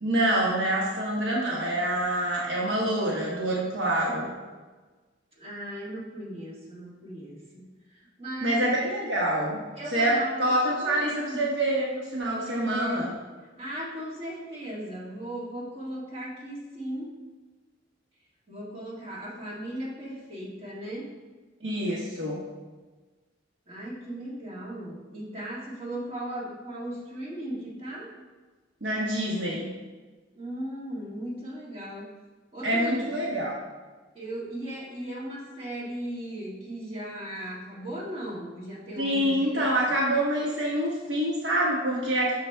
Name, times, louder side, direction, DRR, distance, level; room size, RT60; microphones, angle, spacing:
voice 1, 0.0-4.3 8.4-9.6 9.9-13.1 21.6-22.4 28.8-29.8 32.6-33.6 39.0-42.3, right 1 dB, 70° right, -4 dB, 1.0 m, -26 dB
voice 2, 5.4-8.7 9.8-11.6 12.5-13.1 13.6-17.1 18.5-21.1 23.7-28.1 30.3-32.1 32.5-33.1 34.1-40.0, right 1 dB, 30° right, -6 dB, 1.8 m, -37 dB
6.3 x 5.0 x 3.4 m, 1.3 s
head